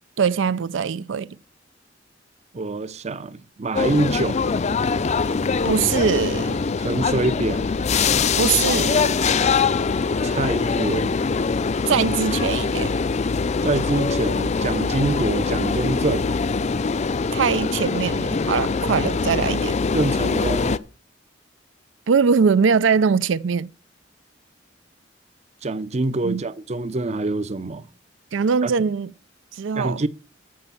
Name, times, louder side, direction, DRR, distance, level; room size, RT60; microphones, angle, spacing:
voice 1, 0.2-1.3 5.6-6.6 8.4-9.2 11.9-13.0 17.3-19.8 22.1-23.7 26.2-26.4 28.3-29.1 29.5-30.0, right 6 dB, 85° right, 0.4 m, -22 dB
voice 2, 2.5-4.4 6.8-7.6 10.2-11.2 13.6-16.3 19.9-20.8 25.6-27.9 28.6-28.7 29.7-30.1, right 2 dB, 35° right, 0.6 m, -25 dB
sound 1, 3.7-20.8, left 4 dB, 35° left, 0.5 m, -23 dB
14.0 x 5.3 x 7.0 m
head